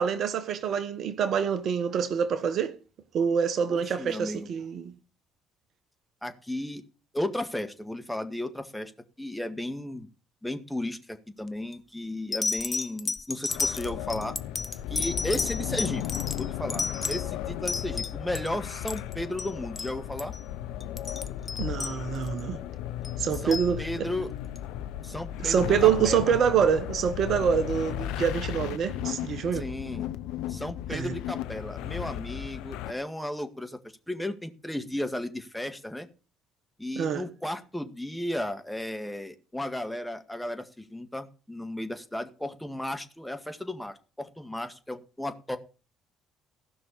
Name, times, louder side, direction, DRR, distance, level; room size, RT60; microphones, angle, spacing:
voice 1, 0.0-2.7 3.1-4.9 21.6-22.6 23.2-24.1 25.4-29.7 30.9-31.1 37.0-37.2, right 7 dB, 55° right, 1.2 m, -26 dB
voice 2, 3.7-4.5 6.2-6.8 7.1-8.9 9.2-10.1 10.4-14.4 14.9-16.0 16.3-20.3 23.4-24.3 25.0-26.4 29.5-30.1 30.5-33.8 34.1-36.1 36.8-45.6, left 1 dB, 5° left, 1.9 m, -34 dB
sound 1, 11.5-11.8 12.3-18.5 18.8-19.5 19.8-19.9 20.2-20.4 20.8-22.4 23.0-23.7 24.6-24.7, left 3 dB, 30° left, 1.0 m, -32 dB
sound 2, 13.5-32.9, left 12 dB, 70° left, 0.7 m, -35 dB
15.5 x 6.1 x 6.8 m
hypercardioid pair, 55°, 0 cm